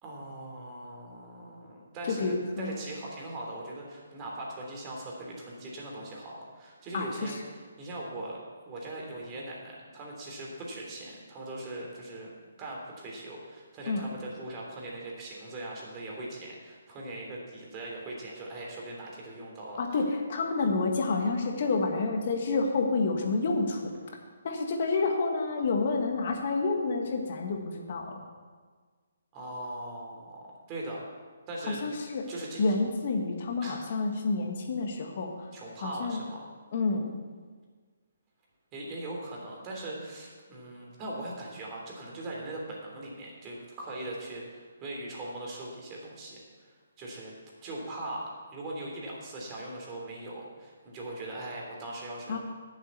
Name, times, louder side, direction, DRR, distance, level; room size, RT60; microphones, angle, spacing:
voice 1, 0.0-8.4 8.6-12.3 12.6-19.8 29.3-31.0 31.5-32.8 33.6-33.8 35.5-36.5 38.7-47.3 47.6-52.4, right 1 dB, 25° right, -2 dB, 3.2 m, -40 dB
voice 2, 2.1-2.8 6.9-7.4 13.9-14.0 19.8-23.8 24.4-28.2 31.8-32.2 32.6-35.3 35.8-36.2 36.7-37.1 52.3-52.4, left 3 dB, 50° left, 2 dB, 1.7 m, -29 dB
8.9 x 7.5 x 8.5 m, 1.5 s
hypercardioid pair, 145°, 0 cm